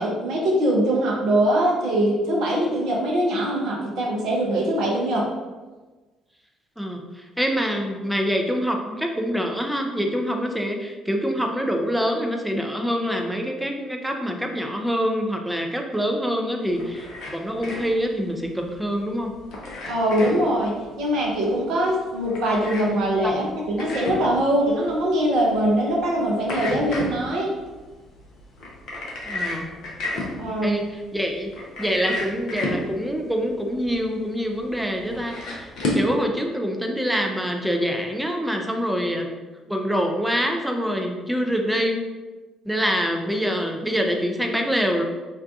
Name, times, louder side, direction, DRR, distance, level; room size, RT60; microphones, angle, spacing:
voice 1, 0.0-5.2 19.9-27.5 30.4-30.8, right 1 dB, 60° right, -3 dB, 0.5 m, -22 dB
voice 2, 7.4-17.1 17.3-19.3 23.2-23.4 29.3-29.7 30.6-31.5 31.8-35.7 35.9-39.3 39.7-42.0 42.7-45.0, equal, 5° right, 2 dB, 0.4 m, -25 dB
sound 1, 16.6-36.1, left 2 dB, 55° left, 0.5 m, -33 dB
2.5 x 2.2 x 2.4 m, 1.2 s
figure-of-eight pair, 50°, 0 cm